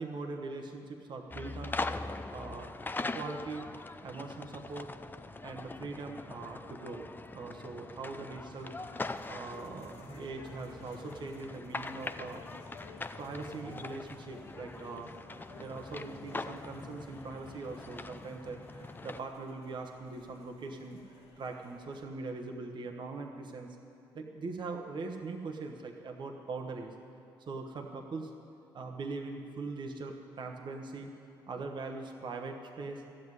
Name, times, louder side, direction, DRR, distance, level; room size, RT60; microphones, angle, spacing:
voice 1, 0.0-1.8 2.3-2.7 3.1-3.7 4.0-4.9 5.4-7.1 7.3-8.7 9.1-12.4 13.2-15.1 15.5-23.8 24.1-26.9 27.5-28.3 28.7-31.1 31.5-33.0, right 3 dB, 50° right, 2 dB, 1.1 m, -41 dB
sound 1, 1.3-19.2, left 3 dB, 20° left, 0.6 m, -42 dB
sound 2, 8.5-22.1, left 4 dB, 90° left, 1.6 m, -56 dB
13.0 x 7.7 x 9.5 m, 2.6 s
supercardioid pair, 60°, 10 cm